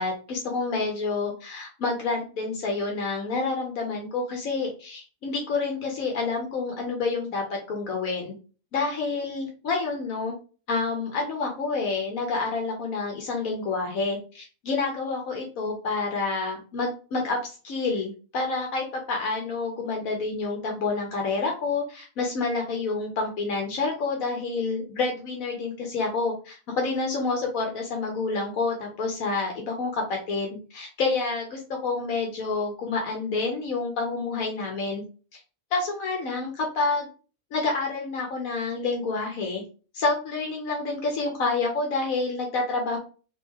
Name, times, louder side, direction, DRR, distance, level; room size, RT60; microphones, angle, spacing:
voice 1, 0.0-8.3 8.7-10.3 10.7-35.0 35.3-35.4 35.7-37.1 37.5-39.6 39.9-43.0, left 3 dB, 80° left, 1 dB, 1.4 m, -28 dB
3.8 x 3.1 x 3.6 m, 0.36 s
omnidirectional pair, 1.4 m